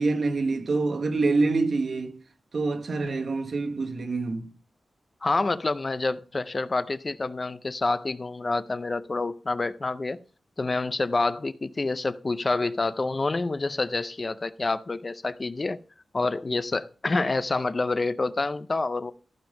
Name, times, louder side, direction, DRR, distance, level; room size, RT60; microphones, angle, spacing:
voice 1, 0.0-2.2 2.5-4.5, right 3 dB, 55° right, 1.3 m, -26 dB
voice 2, 5.2-10.2 10.6-15.8 16.1-19.1, left 3 dB, 30° left, 0.5 m, -27 dB
15.0 x 5.2 x 5.2 m
wide cardioid pair, 135°, 0 cm